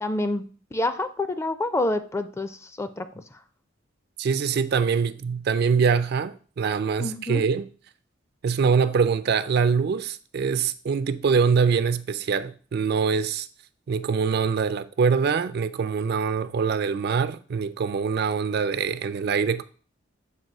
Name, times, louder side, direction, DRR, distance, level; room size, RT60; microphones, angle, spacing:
voice 1, 0.0-3.2 7.0-7.4, left 2 dB, 15° left, 0.4 m, -28 dB
voice 2, 4.2-7.7 8.4-13.5 13.9-19.6, right 5 dB, 55° right, 0.4 m, -24 dB
7.5 x 2.6 x 5.3 m
head